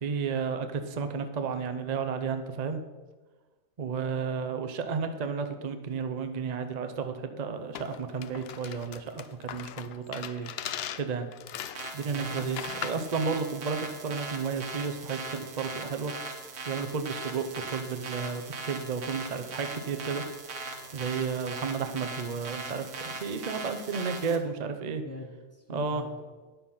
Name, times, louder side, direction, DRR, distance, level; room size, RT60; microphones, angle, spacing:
voice 1, 0.0-2.8 3.8-10.5 10.9-11.3 11.9-20.2 20.9-25.0 25.7-26.0, right 5 dB, 40° right, 7 dB, 0.7 m, -32 dB
sound 1, 7.7-13.1, left 10 dB, 60° left, 0.7 m, -39 dB
sound 2, 11.7-24.4, right 3 dB, 85° right, 1.6 m, -40 dB
voice 2, 12.0-12.6 24.9-26.4, left 1 dB, 15° left, 2 dB, 0.8 m, -46 dB
9.6 x 6.8 x 5.6 m, 1.3 s
omnidirectional pair, 1.4 m